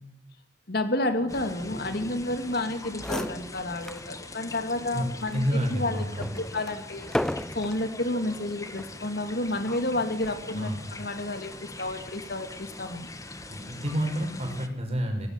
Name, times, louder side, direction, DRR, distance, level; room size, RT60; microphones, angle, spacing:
voice 1, 0.7-6.0 6.4-7.1 7.5-13.1, left 2 dB, 60° left, 8 dB, 2.4 m, -30 dB
sound 1, 1.3-14.7, left 2 dB, 20° left, 1.8 m, -42 dB
sound 2, 2.7-2.8 2.9-4.1 4.5-4.7 5.3-7.9 8.7-9.0, equal, 5° left, 0.7 m, -34 dB
voice 2, 5.3-6.3 10.5-10.8 13.5-15.3, equal, 35° right, 3 dB, 6.2 m, -29 dB
23.5 x 18.5 x 7.3 m, 0.87 s
head